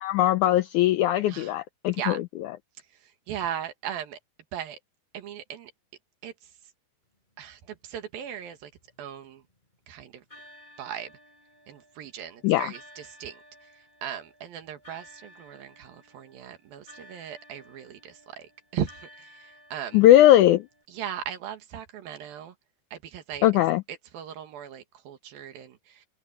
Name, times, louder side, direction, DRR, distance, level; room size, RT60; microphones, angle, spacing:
voice 1, 0.0-2.5 12.4-12.7 19.9-20.7 23.4-23.8, left 13 dB, 85° left, 1.7 m, -20 dB
voice 2, 3.3-4.2 4.5-4.8 5.1-5.7 6.2-6.3 7.4-8.7 9.0-9.4 9.9-10.2 10.8-11.1 11.7-13.4 14.0-18.5 18.7-19.3 19.7-20.0 20.9-22.5 22.9-23.5 24.1-25.8, right 9 dB, 80° right, 3.5 m, -37 dB
sound 1, 8.3-9.7 10.3-20.8, equal, 10° left, 6.8 m, -54 dB
omnidirectional pair, 4.1 m